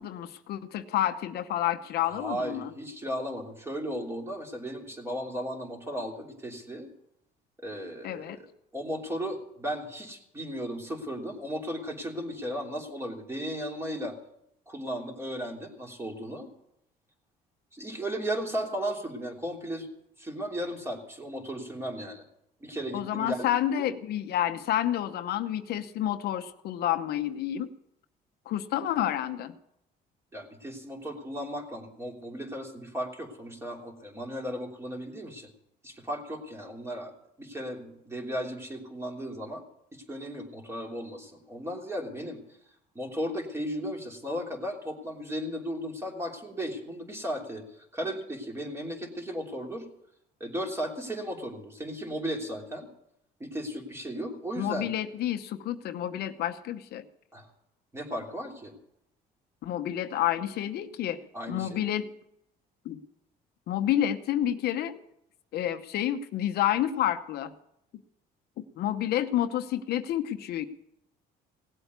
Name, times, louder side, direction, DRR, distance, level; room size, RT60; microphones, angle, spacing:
voice 1, 0.0-2.7 8.0-8.4 22.9-27.7 28.5-29.5 54.6-57.0 59.6-62.1 62.8-63.0 63.7-64.9 65.5-67.5 68.6-70.7, left 11 dB, 70° left, 8 dB, 0.9 m, -29 dB
voice 2, 2.0-6.9 7.6-8.5 8.7-14.2 14.7-16.5 17.7-19.9 20.2-22.2 22.6-23.5 23.8-23.9 30.3-35.5 35.8-37.1 37.4-39.6 39.9-42.4 42.9-49.8 50.4-52.9 53.4-54.9 57.3-57.5 57.9-58.7 61.3-61.9, equal, 15° right, 1 dB, 3.2 m, -35 dB
17.5 x 8.1 x 8.2 m, 0.78 s
cardioid pair, 110°, 17 cm